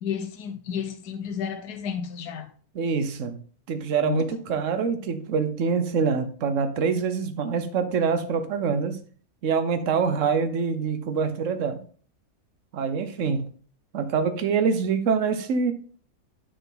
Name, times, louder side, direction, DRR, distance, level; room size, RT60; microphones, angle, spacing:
voice 1, 0.0-2.5 4.0-4.2, left 8 dB, 90° left, 1.3 m, -31 dB
voice 2, 2.7-3.4 3.7-9.0 9.4-11.8 12.7-13.4 13.9-15.7, right 5 dB, 60° right, 1.2 m, -25 dB
10.0 x 5.4 x 3.9 m
omnidirectional pair, 1.6 m